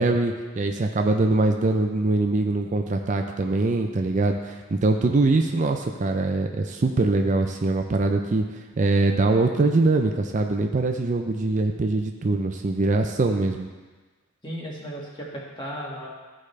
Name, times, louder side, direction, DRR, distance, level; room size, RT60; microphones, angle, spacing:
voice 1, 0.0-8.4 8.8-13.7, right 2 dB, 40° right, 4 dB, 0.4 m, -23 dB
voice 2, 14.4-16.1, equal, 25° left, -4 dB, 1.7 m, -35 dB
14.0 x 4.9 x 3.3 m, 1.3 s
head